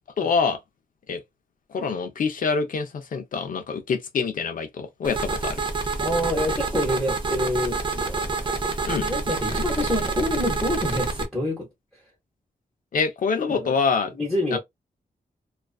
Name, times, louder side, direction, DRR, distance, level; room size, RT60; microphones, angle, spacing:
voice 1, 0.2-0.6 1.1-1.2 1.7-5.6 8.8-9.1 12.9-14.1 14.5-14.6, left 5 dB, 60° left, 0.5 m, -25 dB
sound 1, 5.0-11.3, right 3 dB, 30° right, 0.5 m, -27 dB
voice 2, 6.0-8.5 9.0-11.7 13.5-13.7 14.1-14.6, left 1 dB, ahead, 0.9 m, -27 dB
2.4 x 2.3 x 2.3 m
wide cardioid pair, 100°, 15 cm